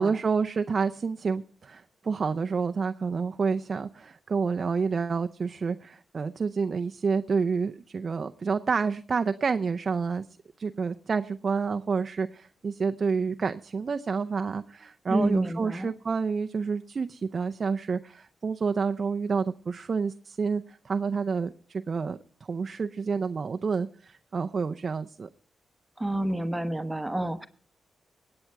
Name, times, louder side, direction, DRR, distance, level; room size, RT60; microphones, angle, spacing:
voice 1, 0.0-10.2 10.6-22.2 22.5-25.3, right 5 dB, 50° right, 8 dB, 0.5 m, -29 dB
voice 2, 15.1-15.9 26.0-27.5, right 1 dB, 15° right, 10 dB, 1.1 m, -29 dB
19.5 x 8.7 x 4.6 m, 0.43 s
cardioid pair, 60°, 0 cm